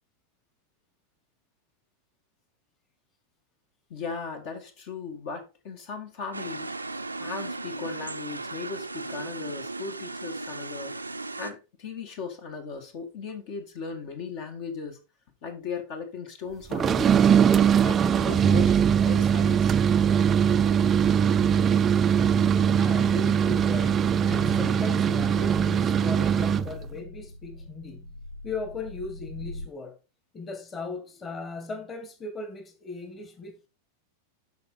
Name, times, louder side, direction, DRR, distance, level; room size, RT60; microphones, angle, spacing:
voice 1, 3.9-6.7 7.2-11.0 11.4-15.0 15.4-17.3 17.8-19.8, left 5 dB, 45° left, 1.9 m, -37 dB
sound 1, 6.3-11.5, right 3 dB, 85° right, 0.7 m, -36 dB
sound 2, 16.7-26.7, right 8 dB, 25° right, 0.5 m, -21 dB
voice 2, 22.7-28.2 28.4-30.0 30.3-33.7, left 3 dB, 20° left, 1.9 m, -38 dB
sound 3, 24.1-29.7, left 1 dB, 85° left, 0.6 m, -42 dB
12.0 x 5.0 x 3.9 m
figure-of-eight pair, 90°, 0 cm